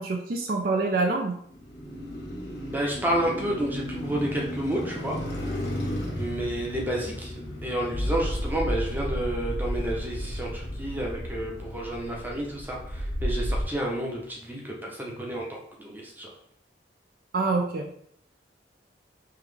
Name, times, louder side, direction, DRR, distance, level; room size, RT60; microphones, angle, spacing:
voice 1, 0.0-1.4 17.3-17.9, right 3 dB, 50° right, 3 dB, 0.4 m, -26 dB
Car passing by, 1.4-13.7, equal, 75° left, 1.1 m, -37 dB
voice 2, 2.7-5.2 6.1-7.3 7.6-16.3, right 1 dB, 10° right, -2 dB, 0.7 m, -30 dB
sound 1, 7.9-13.6, equal, 45° left, 0.6 m, -32 dB
3.7 x 2.9 x 3.3 m, 0.67 s
head